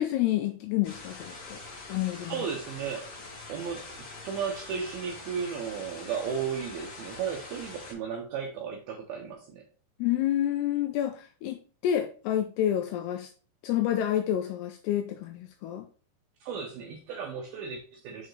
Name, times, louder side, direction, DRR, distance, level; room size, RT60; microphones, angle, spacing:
voice 1, 0.0-1.6 1.9-2.4 10.0-13.3 13.6-15.9, left 11 dB, 85° left, 5 dB, 2.4 m, -29 dB
sound 1, 0.8-7.9, left 3 dB, 50° left, 2.3 m, -44 dB
voice 2, 2.3-3.1 3.5-3.9 4.2-9.6 16.4-18.3, right 7 dB, 80° right, 1 dB, 2.2 m, -34 dB
6.7 x 4.5 x 3.2 m, 0.39 s
omnidirectional pair, 5.2 m